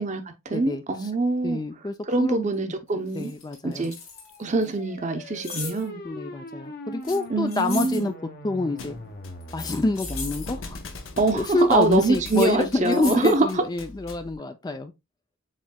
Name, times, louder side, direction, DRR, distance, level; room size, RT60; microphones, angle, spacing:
voice 1, 0.0-1.6 2.1-3.3 3.6-3.9 4.4-6.0 7.3-8.1 11.2-13.6, right 3 dB, 35° right, 0.7 m, -24 dB
voice 2, 0.5-0.8 1.4-2.5 3.2-3.9 6.0-8.1 8.4-8.9 9.5-10.8 11.3-14.9, left 2 dB, 20° left, 0.4 m, -27 dB
sound 1, 2.5-2.6 3.1-4.7 5.4-5.9 7.0-8.1 9.4-10.5 12.2-12.5 12.9-13.4, left 6 dB, 85° left, 1.8 m, -38 dB
sound 2, 4.1-11.0, left 1 dB, 50° left, 1.0 m, -40 dB
Thump thud, 8.8-14.4, left 3 dB, 70° left, 0.8 m, -42 dB
7.3 x 3.2 x 2.2 m
head